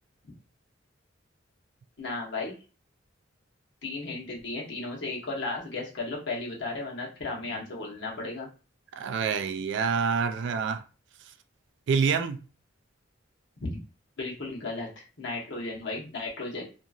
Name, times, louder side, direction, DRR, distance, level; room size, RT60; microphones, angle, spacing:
voice 1, 2.0-2.5 3.8-8.5 13.6-13.8 14.2-14.9 15.2-16.6, left 3 dB, 65° left, 1.0 m, -34 dB
voice 2, 9.0-10.8 11.9-12.4, right 6 dB, 65° right, 0.3 m, -26 dB
2.8 x 2.4 x 2.4 m
head